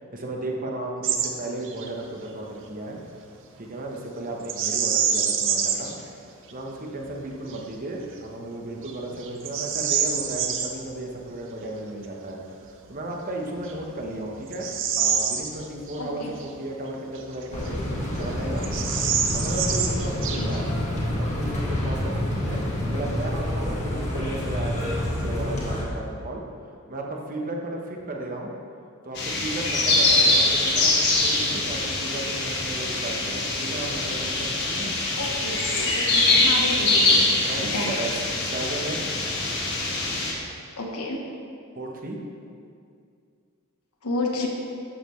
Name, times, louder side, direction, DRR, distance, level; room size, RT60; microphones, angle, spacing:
voice 1, 0.1-3.0 3.6-5.9 6.5-14.7 15.0-18.7 19.3-20.7 21.2-26.4 26.9-28.5 29.0-34.9 37.5-39.2 41.7-42.2, right 1 dB, 40° right, 0 dB, 1.0 m, -34 dB
Bird vocalization bird call bird song, 1.0-1.3 1.6-1.9 4.4-5.9 6.5-6.6 7.2-7.6 8.2-8.3 8.8-10.7 12.8-12.9 13.6-16.0 16.4-16.5 17.2-18.0 18.2-18.3 18.6-20.7, right 7 dB, 60° right, 0.7 m, -26 dB
voice 2, 16.0-16.3 20.3-20.7 35.2-37.3 37.7-37.9 40.8-41.2 44.0-44.5, left 2 dB, 80° left, -1 dB, 1.2 m, -31 dB
sound 1, 17.5-25.8, left 1 dB, 30° left, 1.5 m, -28 dB
sound 2, 29.1-40.3, left 2 dB, 50° left, 1.6 m, -23 dB
12.0 x 6.7 x 3.1 m, 2.4 s
head